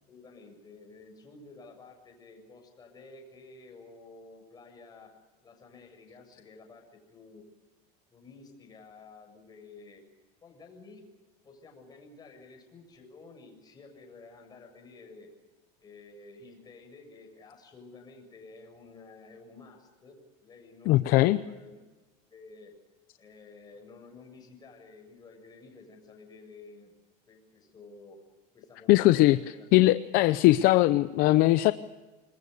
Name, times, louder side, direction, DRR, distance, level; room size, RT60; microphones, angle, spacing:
voice 1, 0.1-5.1 5.4-7.4 8.1-10.0 10.4-11.0 11.4-15.3 15.8-21.9 22.3-22.7 23.2-26.9 27.3-28.2 28.5-29.7, left 3 dB, 20° left, 3 dB, 7.1 m, -51 dB
voice 2, 20.9-21.4 28.9-29.4 29.7-31.7, left 17 dB, 50° left, 13 dB, 0.7 m, -20 dB
26.5 x 22.0 x 6.8 m, 1.2 s
cardioid pair, 150°, 19 cm